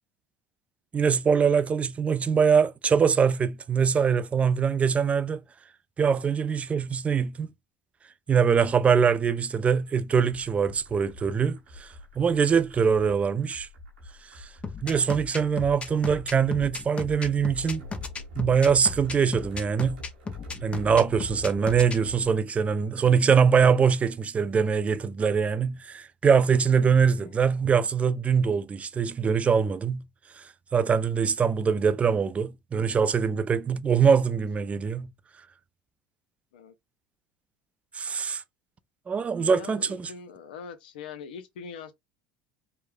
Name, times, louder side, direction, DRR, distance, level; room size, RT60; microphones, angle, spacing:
voice 1, 0.9-5.4 6.0-7.5 8.3-11.9 12.2-13.7 14.4-14.5 14.8-17.8 18.4-20.0 20.6-30.0 30.4-30.5 30.7-35.1 37.9-38.4 39.1-40.1, right 6 dB, 25° right, 0.4 m, -23 dB
sound 1, 10.3-22.3, left 1 dB, 85° right, 1.0 m, -45 dB
voice 2, 13.0-13.4 27.1-27.5 34.2-34.4 36.5-36.7 39.4-41.9, left 6 dB, 85° left, 0.5 m, -43 dB
sound 2, 14.6-22.0, left 4 dB, 25° left, 0.5 m, -35 dB
3.1 x 2.1 x 2.2 m
hypercardioid pair, 80°, 5 cm